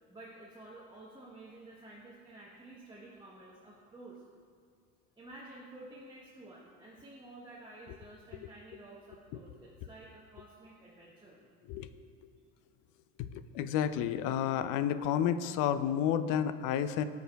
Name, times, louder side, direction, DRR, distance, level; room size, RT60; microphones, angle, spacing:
voice 1, 0.1-4.2 5.2-11.4, right 2 dB, 10° right, -5 dB, 0.9 m, -51 dB
voice 2, 13.2-17.0, left 9 dB, 55° left, 12 dB, 0.5 m, -31 dB
13.0 x 4.7 x 2.3 m, 2.2 s
supercardioid pair, 85°, 38 cm